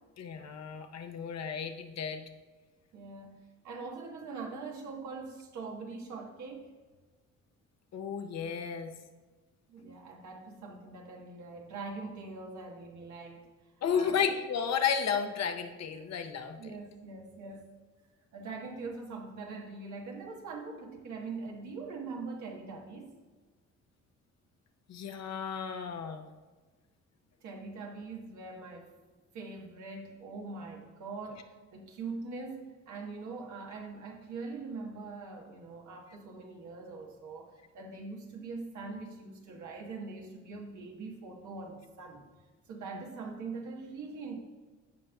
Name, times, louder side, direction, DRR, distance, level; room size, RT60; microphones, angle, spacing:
voice 1, 0.2-2.3 7.9-8.9 13.8-16.6 24.9-26.3, left 7 dB, 60° left, 6 dB, 0.8 m, -33 dB
voice 2, 2.9-6.7 9.7-13.4 13.9-14.3 16.6-17.7 18.3-23.1 27.4-28.9 29.3-42.2 42.7-44.3, right 4 dB, 70° right, 0 dB, 1.4 m, -42 dB
15.0 x 5.2 x 2.3 m, 1.3 s
cardioid pair, 90°, 30 cm